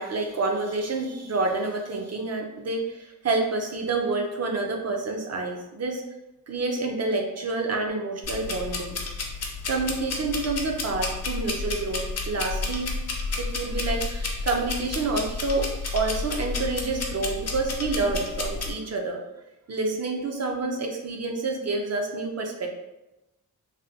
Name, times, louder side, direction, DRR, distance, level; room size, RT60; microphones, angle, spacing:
voice 1, 0.0-6.0 6.5-9.0 9.7-19.2 19.7-22.7, right 3 dB, 45° right, 2 dB, 0.5 m, -28 dB
sound 1, 8.2-18.7, left 3 dB, 45° left, 0.5 m, -31 dB
3.3 x 2.1 x 2.7 m, 0.95 s
wide cardioid pair, 130°, 36 cm